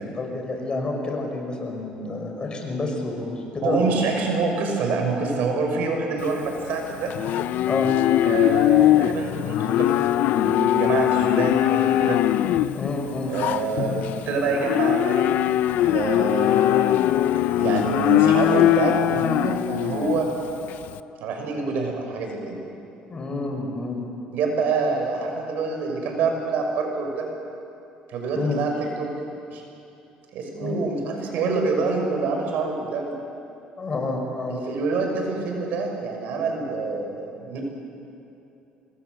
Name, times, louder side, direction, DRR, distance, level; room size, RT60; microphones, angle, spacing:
voice 1, 0.1-4.0 7.7-7.9 12.7-13.3 23.1-24.1 28.3-28.7 30.6-30.8 33.8-34.6, left 3 dB, 30° left, 2 dB, 5.7 m, -29 dB
voice 2, 3.6-7.1 8.2-9.9 10.2-12.2 13.3-15.3 15.8-17.1 17.6-20.3 21.2-22.6 24.3-27.3 28.1-28.7 29.0-29.1 29.5-29.6 30.3-33.2 34.5-37.6, right 4 dB, 70° right, 2 dB, 6.2 m, -26 dB
Livestock farm animals working animals, 6.2-20.9, left 13 dB, 70° left, 0.6 m, -21 dB
26.0 x 21.0 x 8.0 m, 2.8 s
cardioid pair, 100°, 3 cm